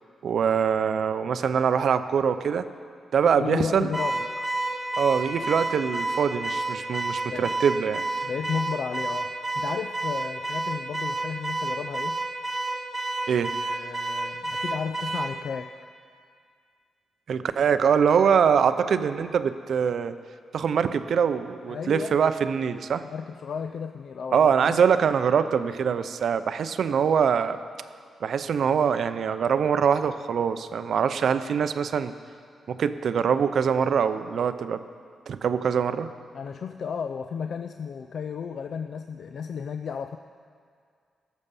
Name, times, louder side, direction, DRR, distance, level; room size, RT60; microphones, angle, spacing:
voice 1, 0.2-2.7 3.1-3.9 5.0-8.0 13.3-13.5 17.3-20.1 20.5-23.0 24.3-27.6 28.2-32.1 32.7-34.8 35.3-36.1, right 7 dB, 60° right, 11 dB, 0.5 m, -23 dB
voice 2, 3.4-4.5 7.3-7.5 8.2-12.2 13.6-15.9 21.7-22.2 23.1-24.8 36.3-40.2, left 6 dB, 55° left, 7 dB, 0.3 m, -33 dB
Car / Alarm, 3.9-15.3, right 2 dB, 5° right, 1.3 m, -30 dB
19.0 x 7.2 x 5.4 m, 2.2 s
wide cardioid pair, 145°, 0 cm